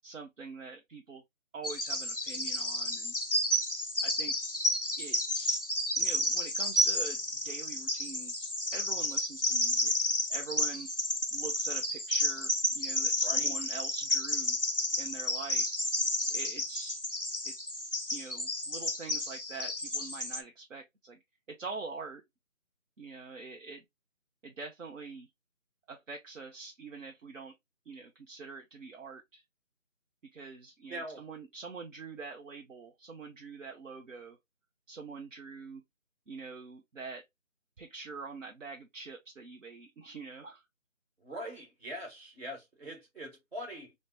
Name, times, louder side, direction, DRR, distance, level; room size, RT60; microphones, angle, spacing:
voice 1, 0.0-1.2 1.5-3.1 4.0-4.3 5.0-5.6 6.0-9.9 10.3-10.9 11.3-14.6 15.0-15.7 16.3-17.0 17.4-17.5 18.1-21.2 21.5-22.2 23.0-23.8 24.4-25.3 25.9-27.5 27.9-29.4 30.3-34.4 34.9-35.8 36.3-37.2 37.8-40.7, right 4 dB, 70° right, 0.7 m, -45 dB
Bird vocalization bird call bird song, 1.6-20.4, left 1 dB, 45° left, 0.4 m, -31 dB
voice 2, 13.2-13.5 30.9-31.2 41.2-43.9, equal, 50° right, 1.5 m, -42 dB
3.1 x 2.1 x 2.8 m
figure-of-eight pair, 180°, 40 cm